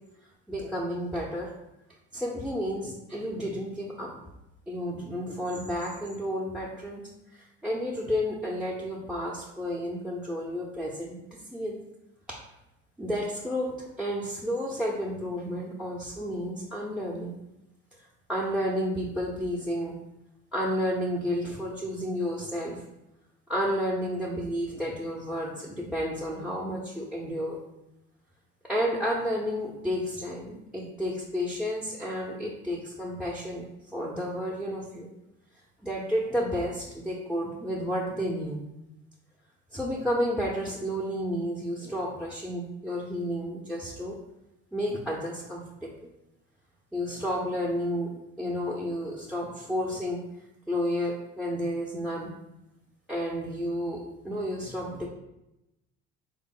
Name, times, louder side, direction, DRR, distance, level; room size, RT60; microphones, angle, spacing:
voice 1, 0.5-1.5 2.1-4.3 4.7-7.0 7.6-11.2 11.5-11.8 13.0-17.4 18.3-20.0 20.5-22.8 23.5-27.6 28.7-33.7 33.9-35.1 35.8-38.6 39.7-44.2 44.7-45.9 46.9-50.2 50.7-52.3 53.1-55.1, equal, 5° right, -3 dB, 0.5 m, -31 dB
3.6 x 2.0 x 3.6 m, 0.89 s
supercardioid pair, 100°, 29 cm